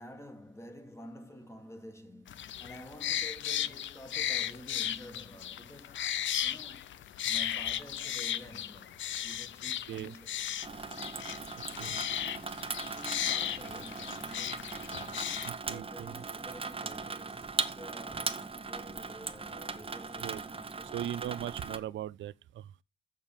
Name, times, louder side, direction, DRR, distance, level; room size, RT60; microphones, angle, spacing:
voice 1, 0.0-10.6 12.8-21.0, equal, 15° left, 1.7 m, -50 dB
sound 1, 2.3-15.5, left 11 dB, 75° left, 0.5 m, -36 dB
Water tap faucet / Sink (filling or washing), 10.6-21.8, right 4 dB, 30° right, 1.0 m, -39 dB
voice 2, 11.5-12.1 15.5-16.2 20.2-20.4 20.9-22.7, right 12 dB, 80° right, 0.5 m, -39 dB
7.1 x 6.5 x 7.3 m
cardioid pair, 85°, 19 cm